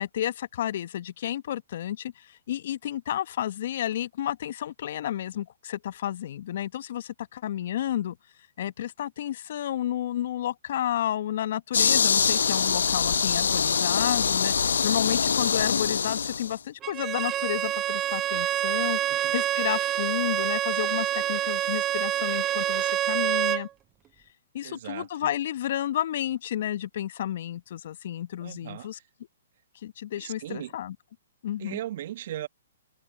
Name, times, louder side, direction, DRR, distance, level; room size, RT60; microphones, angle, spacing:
voice 1, 0.0-8.2 8.6-19.0 19.3-23.7 24.5-29.0 29.8-30.9 31.4-31.8, left 11 dB, 55° left, 1.3 m, -31 dB
sound 1, 11.7-16.5, left 6 dB, 70° left, 0.3 m, -24 dB
Bowed string instrument, 16.8-23.7, right 12 dB, 25° right, 0.5 m, -27 dB
voice 2, 18.7-19.3 24.6-25.3 28.4-29.1 30.2-30.7 31.6-32.5, right 12 dB, 50° right, 1.8 m, -38 dB
figure-of-eight pair, 120°, 0 cm